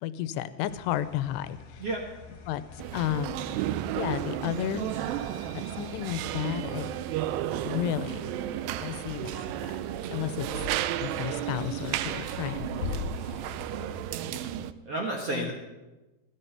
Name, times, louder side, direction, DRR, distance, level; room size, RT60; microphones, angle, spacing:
voice 1, 0.0-1.8 2.5-3.4 4.0-4.9 5.5-6.9 7.6-8.3 8.8-9.8 10.1-10.5 11.0-13.4 14.6-14.7 15.3-15.5, left 12 dB, 90° left, 13 dB, 2.8 m, -33 dB
sound 1, 0.6-14.0, left 4 dB, 55° left, 3.2 m, -44 dB
sound 2, 1.1-14.4, left 5 dB, 5° left, 1.3 m, -52 dB
sound 3, 2.8-14.7, right 12 dB, 85° right, 2.7 m, -33 dB
voice 2, 14.8-15.5, right 2 dB, 60° right, -1 dB, 1.6 m, -32 dB
16.5 x 13.5 x 5.8 m, 1.1 s
omnidirectional pair, 4.8 m